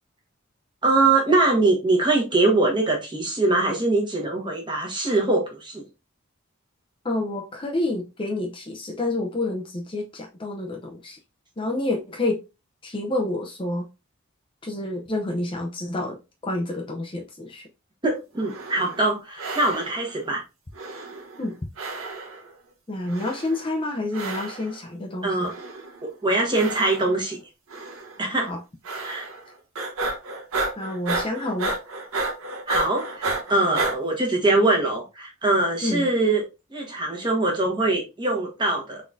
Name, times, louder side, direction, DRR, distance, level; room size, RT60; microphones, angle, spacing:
voice 1, 0.8-5.8 18.0-20.4 25.2-25.5 26.0-27.4 28.2-28.5 29.0-29.3 32.7-36.4 36.7-39.0, right 2 dB, 20° right, 1.1 m, -22 dB
voice 2, 7.0-11.2 11.6-12.4 12.8-13.9 14.6-16.2 16.4-17.7 21.4-21.6 22.9-25.5 28.4-28.6 30.8-31.7 35.8-36.1, left 2 dB, 25° left, 0.5 m, -28 dB
sound 1, 18.4-19.1 19.4-20.2 20.7-21.5 21.8-22.5 23.1-23.7 24.1-24.8 25.4-26.0 26.5-27.3 27.7-28.2 28.8-29.5 29.7-34.0, right 3 dB, 85° right, 1.1 m, -31 dB
3.9 x 3.7 x 2.6 m
head